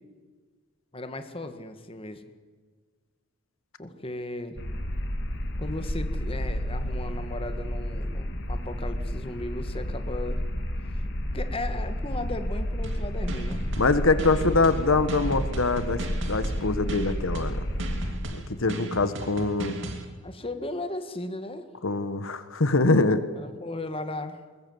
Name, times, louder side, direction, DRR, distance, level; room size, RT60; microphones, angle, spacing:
voice 1, 0.9-2.2 3.8-4.6 5.6-10.4 11.3-13.6 14.3-14.6 20.2-21.7 23.4-24.4, left 2 dB, 25° left, 8 dB, 1.6 m, -36 dB
sound 1, 4.6-18.1, equal, 55° left, 2.6 m, -31 dB
sound 2, 12.8-20.0, right 1 dB, 60° right, 2.9 m, -36 dB
voice 2, 13.8-16.0 16.3-17.6 18.3-19.9 21.8-23.2, left 3 dB, 75° left, 12 dB, 1.3 m, -24 dB
21.5 x 20.5 x 8.0 m, 1.5 s
head